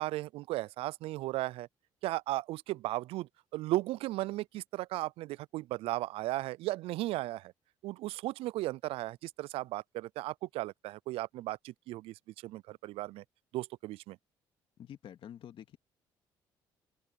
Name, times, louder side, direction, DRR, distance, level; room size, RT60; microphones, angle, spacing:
voice 1, 0.0-1.7 2.0-7.5 7.8-13.2 13.5-14.2, right 17 dB, 75° right, 0.4 m, -36 dB
voice 2, 14.8-15.8, left 10 dB, 65° left, 2.3 m, -48 dB
open air
supercardioid pair, 65°, 10 cm